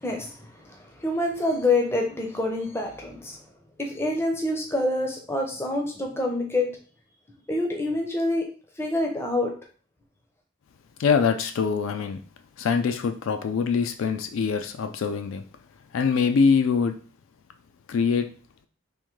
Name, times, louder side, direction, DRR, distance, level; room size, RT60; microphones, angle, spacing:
voice 1, 0.0-3.4 3.8-6.7 7.5-8.4 8.8-9.5, left 2 dB, 10° left, 0.5 m, -26 dB
voice 2, 11.0-12.2 12.6-15.4 15.9-17.0 17.9-18.3, left 5 dB, 65° left, 0.3 m, -23 dB
3.6 x 2.6 x 3.1 m
head